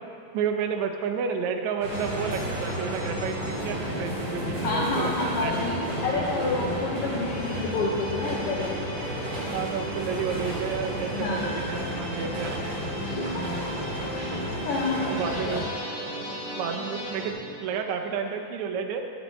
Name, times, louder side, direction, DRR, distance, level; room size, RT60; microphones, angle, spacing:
voice 1, 0.3-5.5 9.5-12.6 15.1-15.7 16.1-16.2 16.6-19.0, right 6 dB, 75° right, 3 dB, 1.9 m, -31 dB
sound 1, 1.8-15.6, equal, 40° right, 2.7 m, -34 dB
sound 2, 1.9-17.3, equal, 20° left, 1.8 m, -35 dB
voice 2, 4.6-5.8 6.0-8.9 11.1-11.5 13.0-13.7 14.1-15.6, left 3 dB, 75° left, -3 dB, 1.3 m, -29 dB
11.0 x 9.3 x 3.2 m, 2.6 s
omnidirectional pair, 3.5 m